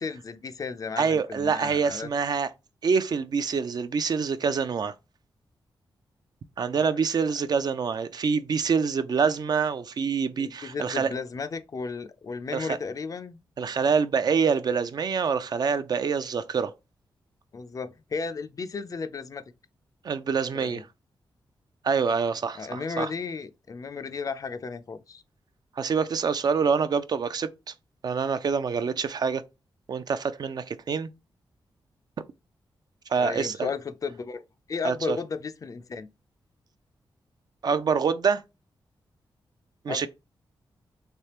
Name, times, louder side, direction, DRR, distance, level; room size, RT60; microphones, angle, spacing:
voice 1, 0.0-2.1 6.8-7.0 10.4-13.4 17.5-19.4 20.5-20.8 22.6-25.2 33.2-34.4 34.7-36.1 39.9-40.1, left 5 dB, 40° left, 0.4 m, -34 dB
voice 2, 1.0-2.5 2.8-4.9 6.6-11.1 12.5-12.8 13.6-16.7 20.0-20.9 21.8-23.1 25.8-27.5 28.0-29.4 29.9-31.1 33.1-33.7 34.8-35.2 37.6-38.4 39.8-40.1, right 5 dB, 50° right, 0.4 m, -26 dB
3.3 x 3.2 x 2.8 m
wide cardioid pair, 110°, 9 cm